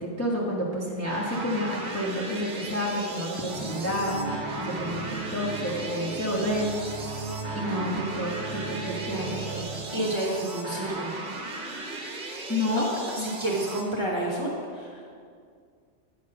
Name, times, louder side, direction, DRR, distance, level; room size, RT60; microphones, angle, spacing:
voice 1, 0.0-5.0 5.3-7.3 7.5-10.1 12.5-12.9, left 1 dB, 15° left, -4 dB, 1.2 m, -30 dB
sound 1, 1.0-13.8, right 2 dB, 45° right, 1.1 m, -37 dB
sound 2, 3.5-9.6, right 4 dB, 40° left, 2.0 m, -36 dB
voice 2, 9.9-11.1 13.2-15.1, right 1 dB, 25° right, -4 dB, 1.2 m, -29 dB
8.8 x 6.2 x 5.4 m, 2.2 s
omnidirectional pair, 1.2 m